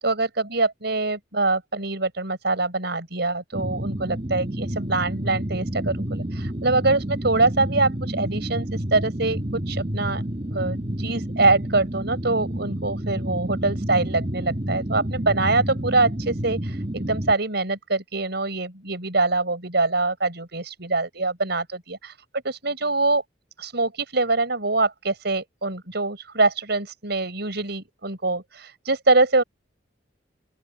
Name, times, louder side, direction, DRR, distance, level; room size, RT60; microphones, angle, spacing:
voice 1, 0.0-10.2 10.5-22.2 22.4-23.2 23.6-29.4, right 3 dB, 65° right, 6.9 m, -24 dB
sound 1, 3.5-17.3, right 1 dB, 30° right, 1.7 m, -29 dB
open air
head